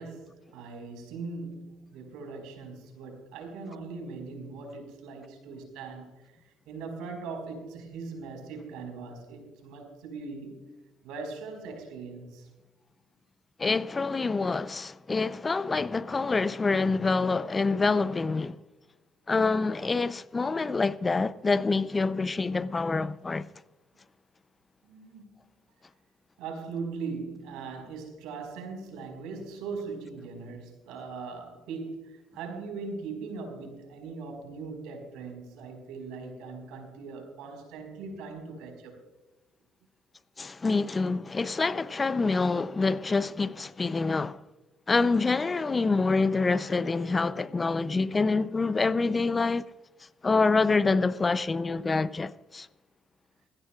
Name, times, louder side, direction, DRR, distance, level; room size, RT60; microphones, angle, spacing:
voice 1, 0.0-6.3 6.7-10.6 11.0-12.5 24.8-25.5 26.4-39.0, right 4 dB, 85° right, 4.7 m, -40 dB
voice 2, 13.6-18.6 19.3-23.5 40.4-44.4 44.9-49.7 50.2-52.7, left 3 dB, 25° left, 0.6 m, -26 dB
20.0 x 16.5 x 2.4 m
cardioid pair, 85°, 0 cm